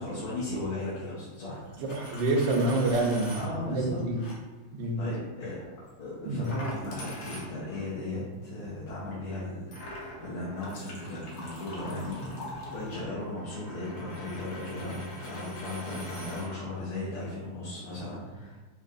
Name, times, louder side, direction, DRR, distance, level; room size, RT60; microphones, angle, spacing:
voice 1, 0.0-1.8 3.3-4.1 5.0-5.6 6.0-18.6, left 2 dB, 85° left, -8 dB, 1.8 m, -36 dB
sound 1, 1.5-4.3 5.0-5.1 5.4-5.9 10.4-13.1, left 2 dB, 45° left, 1.0 m, -46 dB
Coin (dropping), 1.7-3.5 4.2-4.4 6.4-7.9 9.7-16.5, equal, 70° left, 1.6 m, -44 dB
voice 2, 1.8-4.2 4.7-5.0 6.2-6.5, right 2 dB, 70° right, 1 dB, 1.2 m, -27 dB
5.4 x 2.8 x 2.5 m, 1.2 s
omnidirectional pair, 2.2 m